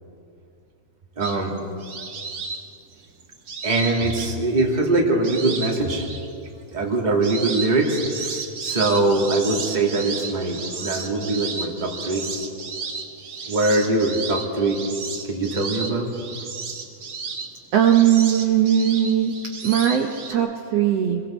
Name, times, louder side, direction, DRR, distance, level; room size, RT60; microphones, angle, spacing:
voice 1, 1.2-1.5 3.6-6.1 6.7-12.2 13.5-14.8 15.2-16.1, right 2 dB, 15° right, 0 dB, 2.0 m, -22 dB
sound 1, 1.2-4.7 5.2-6.3 6.8-20.3, right 4 dB, 40° right, 1.4 m, -33 dB
voice 2, 17.7-21.2, right 10 dB, 65° right, 2 dB, 1.8 m, -19 dB
27.0 x 22.0 x 4.4 m, 2.5 s
omnidirectional pair, 3.6 m